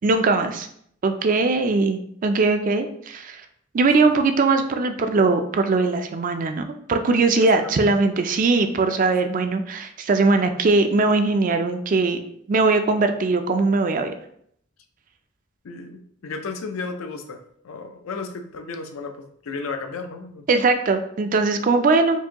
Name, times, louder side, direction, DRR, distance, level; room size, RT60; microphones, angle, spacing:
voice 1, 0.0-0.7 1.0-3.4 3.7-6.6 6.9-12.2 12.5-14.1 20.5-22.2, right 3 dB, 40° right, 7 dB, 0.3 m, -20 dB
voice 2, 7.4-7.7 15.6-17.4 17.6-20.5, left 4 dB, 90° left, 6 dB, 0.5 m, -34 dB
4.6 x 2.6 x 2.8 m, 0.68 s
head